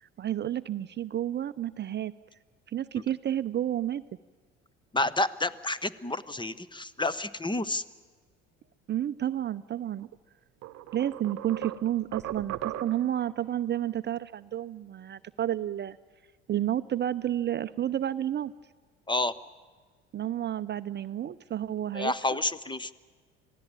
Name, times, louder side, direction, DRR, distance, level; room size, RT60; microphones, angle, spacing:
voice 1, 0.0-2.1 2.7-4.0 8.9-10.1 10.9-16.0 16.5-18.5 20.1-22.4, right 11 dB, 35° right, 13 dB, 0.6 m, -31 dB
voice 2, 4.9-7.8 19.1-19.3 21.9-22.9, left 2 dB, 15° left, 18 dB, 0.8 m, -29 dB
sound 1, 10.0-10.1 10.6-13.2, right 13 dB, 50° right, 0.9 m, -37 dB
26.5 x 17.0 x 8.9 m, 1.5 s
hypercardioid pair, 65°, 33 cm